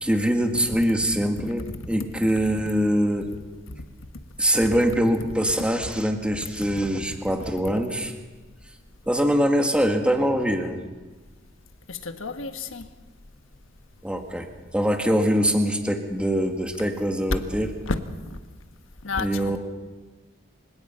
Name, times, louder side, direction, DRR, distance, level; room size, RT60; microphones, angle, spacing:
voice 1, 0.0-3.3 4.4-8.1 9.1-10.8 14.0-14.5 14.7-17.7 19.2-19.6, equal, 5° right, 4 dB, 1.7 m, -23 dB
voice 2, 11.9-12.9 17.9-18.0 18.3-18.4 19.0-19.6, left 3 dB, 75° left, 8 dB, 1.5 m, -31 dB
28.0 x 17.0 x 5.7 m, 1.3 s
head